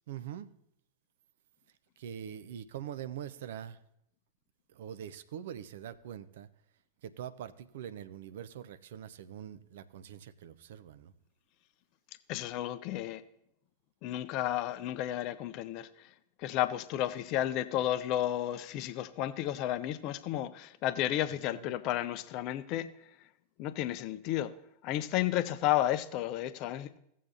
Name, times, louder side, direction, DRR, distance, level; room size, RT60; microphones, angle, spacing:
voice 1, 0.1-0.5 2.0-3.8 4.7-6.5 7.0-11.1 21.3-21.7, right 10 dB, 55° right, 0.5 m, -43 dB
voice 2, 12.3-13.2 14.0-15.9 16.4-22.9 23.6-24.5 24.8-27.0, left 13 dB, 40° left, 0.5 m, -32 dB
16.5 x 7.3 x 2.8 m
figure-of-eight pair, 90°, 0 cm